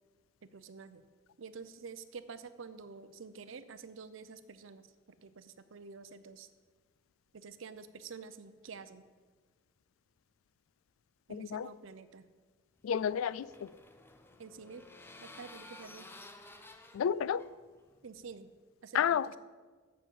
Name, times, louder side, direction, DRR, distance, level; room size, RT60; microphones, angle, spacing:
voice 1, 0.4-1.0 1.4-6.5 7.3-9.0 11.3-12.2 14.4-14.9 15.2-16.1 18.0-18.5 18.8-19.4, right 5 dB, 70° right, 13 dB, 0.6 m, -49 dB
voice 2, 11.3-11.7 12.8-13.8 16.9-17.5 18.9-19.4, left 8 dB, 85° left, 19 dB, 0.3 m, -31 dB
sound 1, 12.8-18.3, left 2 dB, 10° left, 0.6 m, -54 dB
7.4 x 6.9 x 7.2 m, 1.4 s
head